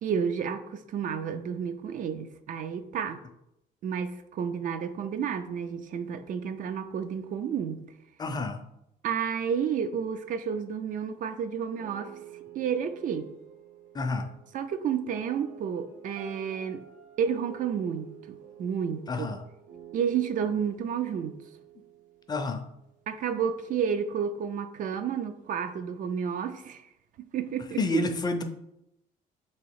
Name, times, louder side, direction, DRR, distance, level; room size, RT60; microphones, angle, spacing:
voice 1, 0.0-3.2 3.8-7.9 9.0-12.1 12.5-13.3 14.5-16.8 17.2-19.3 19.9-21.4 23.1-26.9 27.2-28.0, right 7 dB, 50° right, 9 dB, 0.4 m, -31 dB
voice 2, 8.2-8.6 13.9-14.3 19.1-19.4 22.3-22.6 27.8-28.4, left 3 dB, 25° left, 6 dB, 0.4 m, -29 dB
sound 1, 11.8-22.9, right 9 dB, 75° right, 1.0 m, -49 dB
3.1 x 3.0 x 4.6 m, 0.82 s
cardioid pair, 110°, 17 cm